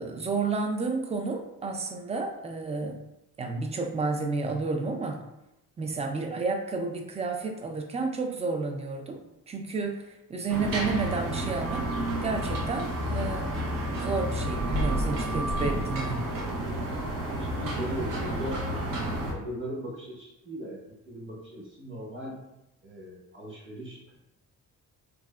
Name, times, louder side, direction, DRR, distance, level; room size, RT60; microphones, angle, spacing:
voice 1, 0.0-3.0 3.4-5.2 5.8-11.9 12.2-13.5 13.9-16.2, right 3 dB, 20° right, 4 dB, 0.3 m, -31 dB
sound 1, 10.5-19.3, right 1 dB, 75° right, 0.7 m, -30 dB
voice 2, 17.4-18.7 19.3-22.4 22.8-24.2, equal, 35° right, -4 dB, 1.0 m, -38 dB
3.3 x 2.1 x 2.2 m, 0.92 s
cardioid pair, 105°, 33 cm